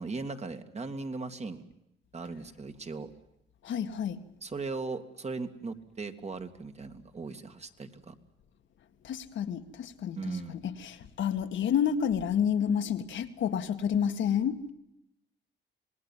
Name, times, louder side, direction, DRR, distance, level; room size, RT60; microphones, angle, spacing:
voice 1, 0.0-1.6 2.1-3.1 4.4-8.1 10.2-10.6, right 3 dB, 35° right, 7 dB, 2.3 m, -38 dB
voice 2, 3.6-4.2 9.0-10.2 10.5-14.6, left 8 dB, 70° left, 8 dB, 1.9 m, -29 dB
27.0 x 19.5 x 7.4 m, 0.85 s
cardioid pair, 90°, 20 cm